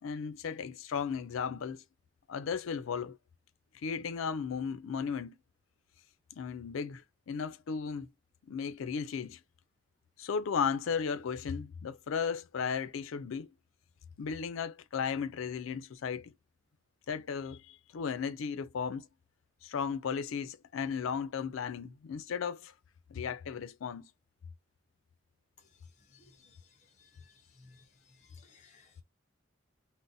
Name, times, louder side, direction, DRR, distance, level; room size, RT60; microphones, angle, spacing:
voice 1, 0.0-1.8 2.3-3.2 3.8-5.3 6.3-8.1 8.5-9.4 10.2-13.5 14.2-16.3 17.1-19.1 19.6-22.7 23.1-24.0, left 6 dB, 85° left, 0.4 m, -35 dB
voice 2, 26.1-26.6 27.0-27.3 27.5-27.9 28.2-29.0, left 4 dB, 35° left, 0.6 m, -60 dB
2.5 x 2.1 x 3.8 m
head